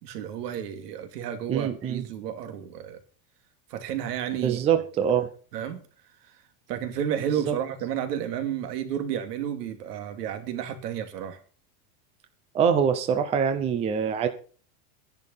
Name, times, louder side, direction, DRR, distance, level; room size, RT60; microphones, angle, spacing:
voice 1, 0.0-3.0 3.7-4.6 5.5-5.8 6.7-11.4, right 9 dB, 80° right, 2.8 m, -31 dB
voice 2, 1.5-2.0 4.4-5.3 7.4-7.6 12.5-14.3, right 7 dB, 15° right, 0.7 m, -24 dB
12.5 x 11.0 x 5.5 m
supercardioid pair, 175°, 47 cm